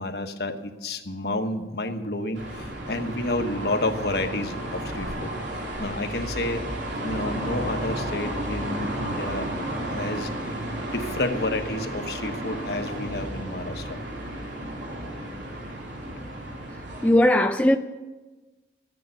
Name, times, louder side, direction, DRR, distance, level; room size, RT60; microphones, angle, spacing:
voice 1, 0.0-5.3 5.8-6.6 7.0-9.5 9.9-10.3 10.8-14.0, left 2 dB, 65° left, 1.2 m, -30 dB
sound 1, 2.3-17.1, right 1 dB, 90° right, 3.3 m, -33 dB
voice 2, 17.0-17.8, left 1 dB, 10° left, 0.4 m, -18 dB
14.0 x 9.4 x 7.9 m
head